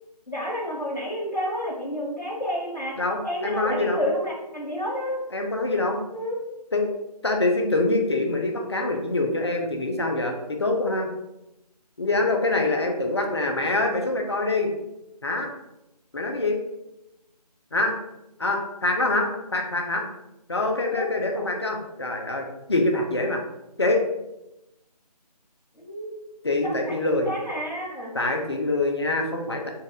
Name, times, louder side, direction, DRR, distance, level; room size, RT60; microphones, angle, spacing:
voice 1, 0.3-3.0 3.2-5.2 6.1-6.4 12.6-12.9 20.8-21.1 21.4-21.5 25.7-26.1 26.6-26.9 27.2-28.1, equal, 90° left, -6 dB, 1.3 m, -30 dB
voice 2, 3.0-4.1 5.3-6.0 6.7-6.9 7.2-11.1 12.0-14.7 15.2-15.5 16.1-16.6 17.7-18.0 18.4-20.0 20.5-23.4 23.8-24.0 26.4-27.3 28.1-29.7, left 2 dB, 40° left, 3 dB, 0.6 m, -25 dB
4.0 x 2.5 x 3.5 m, 0.90 s
figure-of-eight pair, 160°, 21 cm